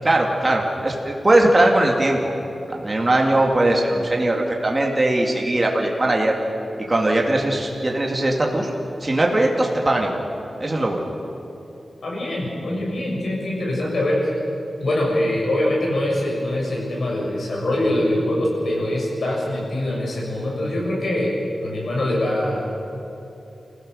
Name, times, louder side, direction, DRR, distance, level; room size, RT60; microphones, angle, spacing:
voice 1, 0.0-2.3 2.7-6.3 6.8-8.7 9.0-10.2 10.6-11.0, right 1 dB, 25° right, 0 dB, 2.2 m, -20 dB
voice 2, 12.0-14.3 14.8-21.3 21.6-22.6, left 1 dB, 60° left, -3 dB, 6.8 m, -23 dB
29.0 x 16.0 x 6.4 m, 2.9 s
wide cardioid pair, 155°, 0 cm